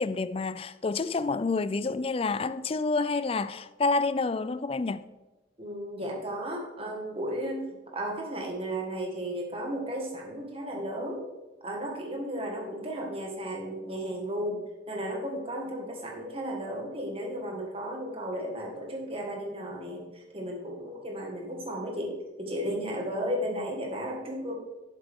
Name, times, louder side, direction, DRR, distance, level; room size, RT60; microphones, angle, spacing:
voice 1, 0.0-5.0, left 3 dB, 30° left, 0.4 m, -28 dB
voice 2, 5.6-7.7 7.9-11.3 11.6-14.6 14.9-24.5, equal, 30° right, 1.9 m, -34 dB
11.5 x 7.7 x 3.7 m
head